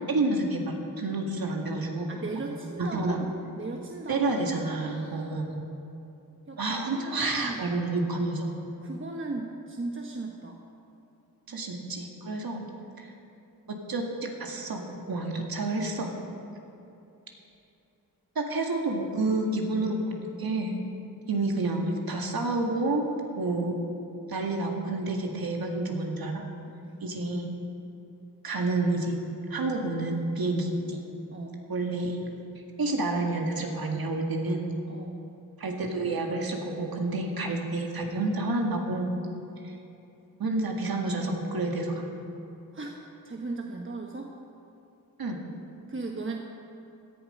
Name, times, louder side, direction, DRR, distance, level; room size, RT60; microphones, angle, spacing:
voice 1, 0.1-2.1 2.8-3.2 4.1-5.5 6.6-8.5 11.5-12.6 13.7-16.1 18.4-20.1 20.4-20.8 21.3-23.1 23.4-23.8 24.3-26.4 27.0-27.5 28.4-29.2 29.5-31.0 31.7-32.3 32.8-34.6 35.6-39.1 39.6-39.7 40.4-42.1 45.2-45.4, right 2 dB, 75° right, 1 dB, 2.0 m, -29 dB
voice 2, 2.1-4.4 4.8-5.4 6.5-7.6 8.8-10.6 26.6-27.0 31.3-31.7 34.9-35.2 42.7-43.0 43.2-44.3 45.9-46.4, right 3 dB, 35° right, 1 dB, 1.1 m, -37 dB
17.0 x 11.0 x 5.4 m, 2.8 s
wide cardioid pair, 80°, 36 cm